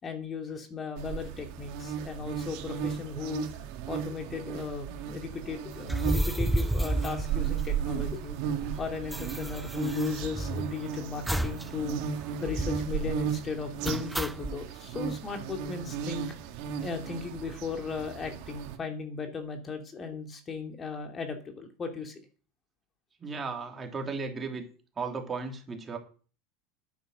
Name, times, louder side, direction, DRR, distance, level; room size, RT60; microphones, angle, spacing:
voice 1, 0.0-3.5 3.9-8.4 8.8-12.0 12.4-16.5 16.8-22.2, left 5 dB, 30° left, 5 dB, 2.6 m, -36 dB
sound 1, 1.0-18.8, right 8 dB, 60° right, 2.0 m, -35 dB
sound 2, 5.8-8.1 8.4-8.5 8.7-10.8 11.3-11.7 12.0-12.1 12.4-12.9 13.8-14.6, right 1 dB, 5° right, 0.7 m, -31 dB
voice 2, 23.2-24.6 25.0-26.0, right 4 dB, 25° right, 3 dB, 3.2 m, -35 dB
9.8 x 9.3 x 6.7 m, 0.39 s
hypercardioid pair, 100°, 0 cm